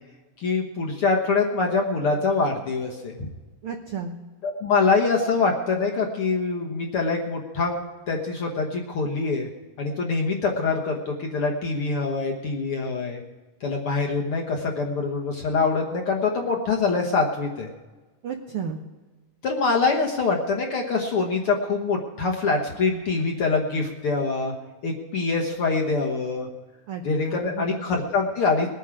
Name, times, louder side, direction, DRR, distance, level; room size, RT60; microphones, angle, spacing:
voice 1, 0.4-3.3 4.4-7.8 8.1-9.5 9.8-13.2 13.6-17.7 19.4-24.5 24.8-26.5 27.0-28.7, left 4 dB, 55° left, 0 dB, 1.6 m, -24 dB
voice 2, 3.6-4.1 18.2-18.8 26.9-27.8, right 6 dB, 80° right, 4 dB, 1.2 m, -33 dB
20.5 x 9.2 x 4.9 m, 1.2 s
omnidirectional pair, 3.8 m